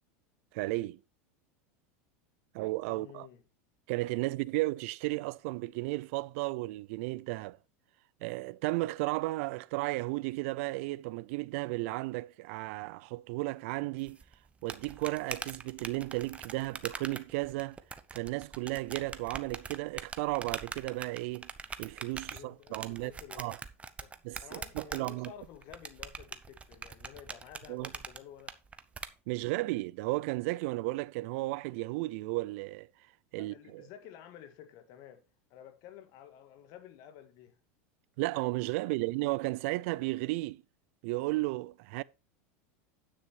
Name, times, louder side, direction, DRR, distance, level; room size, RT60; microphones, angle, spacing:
voice 1, 0.5-1.0 2.5-3.3 3.9-7.6 8.2-14.2 14.6-17.8 18.1-21.5 21.8-23.1 23.4-23.6 24.2-25.3 27.7-27.9 29.3-32.9 33.3-33.9 38.2-40.6 41.0-42.0, right 21 dB, 65° right, 0.4 m, -34 dB
voice 2, 2.9-3.4 22.2-23.6 24.0-24.1 24.4-28.5 33.4-35.2 35.5-37.6 38.9-39.0, left 10 dB, 55° left, 1.7 m, -52 dB
sound 1, 14.1-29.1, right 5 dB, 15° right, 0.8 m, -43 dB
9.6 x 6.4 x 4.5 m
supercardioid pair, 125°, 8 cm